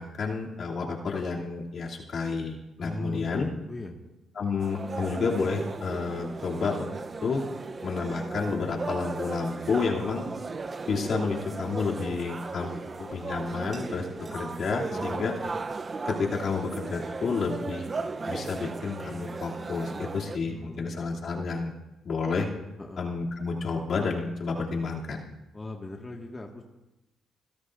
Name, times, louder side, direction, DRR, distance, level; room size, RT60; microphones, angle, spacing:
voice 1, 0.0-3.5 4.3-6.9 7.2-7.4 7.8-10.2 10.9-12.7 13.0-15.3 16.0-17.9 18.3-21.7 22.0-22.5 23.0-25.2, left 4 dB, 55° left, -2 dB, 2.8 m, -30 dB
voice 2, 2.8-3.9 14.9-15.2 20.5-21.3 22.8-23.0 25.5-26.6, left 2 dB, 25° left, 0 dB, 1.8 m, -39 dB
sound 1, 4.6-20.4, right 4 dB, 35° right, 0.7 m, -36 dB
26.5 x 16.0 x 2.6 m, 0.99 s
cardioid pair, 90°, 0 cm